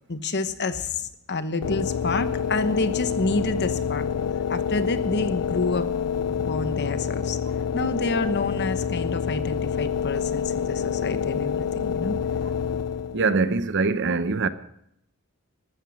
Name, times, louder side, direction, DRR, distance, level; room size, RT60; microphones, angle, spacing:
voice 1, 0.1-4.1 4.5-5.9 6.4-7.4 7.7-12.1, left 2 dB, 50° left, 1.2 m, -28 dB
sound 1, 1.6-13.3, left 7 dB, 85° left, 0.5 m, -27 dB
voice 2, 13.1-14.5, right 4 dB, 55° right, 0.8 m, -23 dB
14.5 x 13.0 x 6.5 m
head